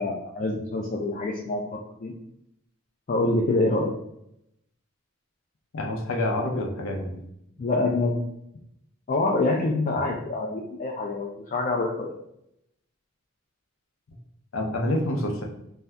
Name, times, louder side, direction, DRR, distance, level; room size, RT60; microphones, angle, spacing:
voice 1, 0.0-2.1 3.1-4.0 7.6-8.2 9.1-12.1, left 2 dB, 40° left, 0 dB, 0.3 m, -26 dB
voice 2, 5.7-7.2 14.5-15.4, left 1 dB, 75° left, 1 dB, 0.6 m, -27 dB
2.6 x 2.2 x 3.3 m, 0.78 s
head